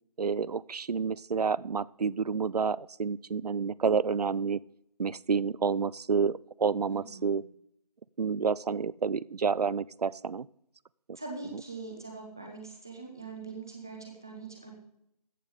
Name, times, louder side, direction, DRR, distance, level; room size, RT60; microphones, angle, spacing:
voice 1, 0.2-4.6 5.0-7.4 8.2-10.5, right 5 dB, 75° right, 22 dB, 0.5 m, -29 dB
voice 2, 6.9-7.3 11.1-14.7, right 4 dB, 5° right, 1 dB, 0.5 m, -42 dB
14.0 x 7.6 x 5.0 m, 0.76 s
figure-of-eight pair, 170°, 20 cm